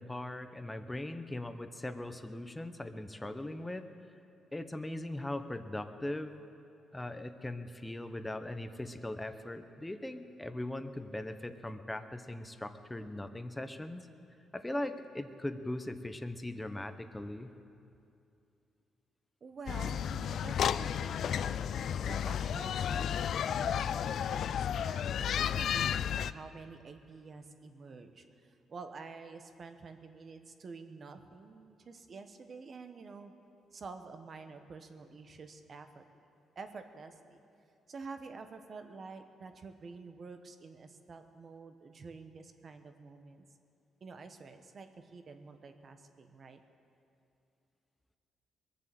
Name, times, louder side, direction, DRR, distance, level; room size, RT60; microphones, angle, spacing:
voice 1, 0.0-3.9 4.5-6.4 6.9-14.1 14.5-17.5, left 1 dB, 10° left, 9 dB, 0.9 m, -40 dB
voice 2, 19.4-33.3 33.7-36.0 36.5-37.4 37.9-43.4 44.0-46.6, right 4 dB, 45° right, 7 dB, 1.2 m, -49 dB
sound 1, 19.7-26.3, left 8 dB, 65° left, 0.3 m, -32 dB
21.5 x 7.6 x 7.7 m, 2.6 s
cardioid pair, 90°, 0 cm